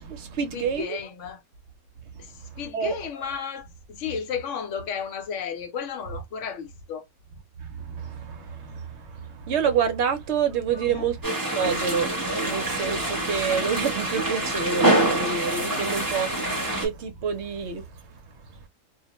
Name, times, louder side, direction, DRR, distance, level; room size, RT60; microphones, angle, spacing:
voice 1, 0.0-1.0 2.0-3.0 7.6-11.2 11.5-18.7, right 6 dB, 65° right, 0.8 m, -28 dB
voice 2, 0.5-1.4 2.2-2.3 2.6-3.7 4.0-7.0 10.7-11.0, left 7 dB, 65° left, 0.9 m, -33 dB
sound 1, 11.2-16.9, right 2 dB, 20° right, 0.8 m, -25 dB
2.4 x 2.1 x 2.8 m
omnidirectional pair, 1.4 m